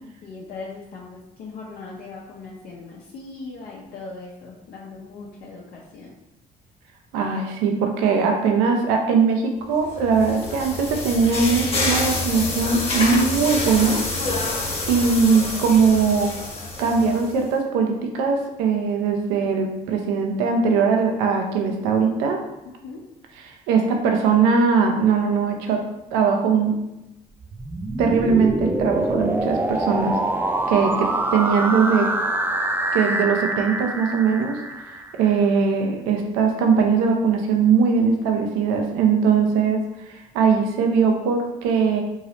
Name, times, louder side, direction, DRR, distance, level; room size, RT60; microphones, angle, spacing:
voice 1, 0.2-6.1 22.6-23.1 30.7-31.3, left 3 dB, 50° left, -3 dB, 0.6 m, -39 dB
voice 2, 7.1-14.0 14.9-16.3 16.8-22.4 23.7-26.8 28.0-30.2 30.7-32.1 32.9-34.6 35.2-39.8 40.1-42.0, right 5 dB, 65° right, 3 dB, 0.6 m, -20 dB
sound 1, 9.8-17.4, left 2 dB, 30° left, 1.1 m, -27 dB
sound 2, 27.4-35.3, right 2 dB, 10° right, 0.4 m, -25 dB
3.8 x 2.8 x 2.9 m, 0.94 s
figure-of-eight pair, 50°, 21 cm